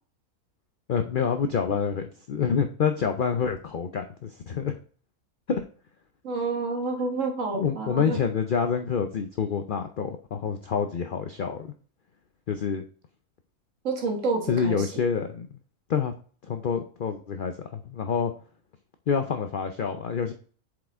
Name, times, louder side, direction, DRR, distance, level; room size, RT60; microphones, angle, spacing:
voice 1, 0.9-4.8 5.5-5.6 7.5-11.7 12.5-12.8 14.5-15.5 15.9-16.1 16.4-18.3 19.1-20.3, left 6 dB, 60° left, 7 dB, 0.5 m, -27 dB
voice 2, 6.2-8.2 13.8-14.9, right 3 dB, 60° right, 2 dB, 1.8 m, -29 dB
7.6 x 5.0 x 3.5 m, 0.42 s
omnidirectional pair, 1.5 m